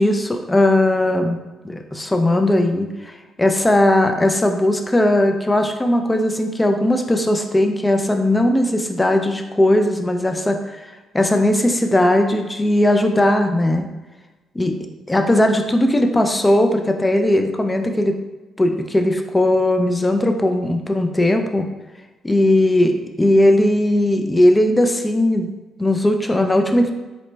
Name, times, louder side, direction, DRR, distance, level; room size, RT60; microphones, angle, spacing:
voice 1, 0.0-1.4 1.6-10.9 11.1-13.9 14.6-14.7 15.1-18.2 18.6-21.7 22.2-25.5 25.8-26.9, left 1 dB, 15° left, 5 dB, 0.3 m, -18 dB
3.9 x 2.1 x 3.2 m, 1.2 s
cardioid pair, 90°, 0 cm